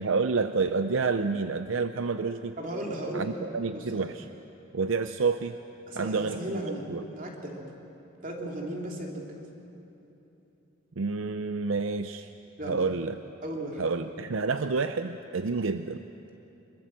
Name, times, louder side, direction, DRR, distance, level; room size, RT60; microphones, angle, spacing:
voice 1, 0.0-2.6 3.1-4.2 4.7-5.6 5.9-7.1 11.0-12.3 12.7-13.2 13.8-16.1, right 4 dB, 70° right, 9 dB, 0.6 m, -29 dB
voice 2, 2.6-3.4 3.7-4.1 5.9-6.8 7.1-7.6 8.2-9.4 12.6-12.8 13.4-13.8, right 1 dB, 40° right, 0 dB, 3.2 m, -36 dB
25.0 x 22.5 x 7.6 m, 3.0 s
head